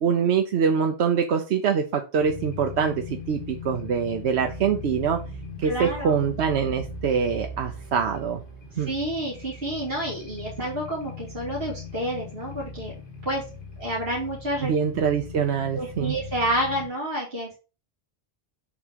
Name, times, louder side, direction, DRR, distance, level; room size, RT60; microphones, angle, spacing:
voice 1, 0.0-5.2 5.6-8.4 8.8-8.9 14.6-16.2, right 7 dB, 75° right, 5 dB, 1.0 m, -24 dB
sound 1, 2.2-16.9, left 3 dB, 50° left, 1.8 m, -39 dB
voice 2, 5.6-6.1 8.7-12.9 13.2-13.4 13.8-14.7 15.7-17.6, right 1 dB, 60° right, -5 dB, 2.6 m, -29 dB
7.2 x 3.7 x 5.1 m, 0.33 s
omnidirectional pair, 1.1 m